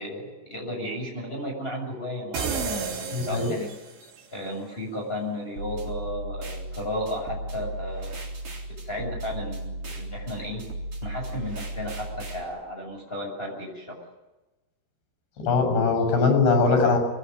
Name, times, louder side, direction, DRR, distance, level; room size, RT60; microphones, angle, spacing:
voice 1, 0.0-3.7 4.3-8.1 8.8-10.6 11.0-14.0, left 1 dB, 15° left, 0 dB, 6.9 m, -34 dB
sound 1, 2.3-4.2, right 5 dB, 85° right, 5.1 m, -31 dB
voice 2, 3.1-3.5 15.4-17.0, left 4 dB, 80° left, 4 dB, 9.7 m, -21 dB
sound 2, 5.6-12.4, right 1 dB, 35° right, 4.4 m, -35 dB
25.0 x 20.5 x 9.6 m, 1.1 s
omnidirectional pair, 4.8 m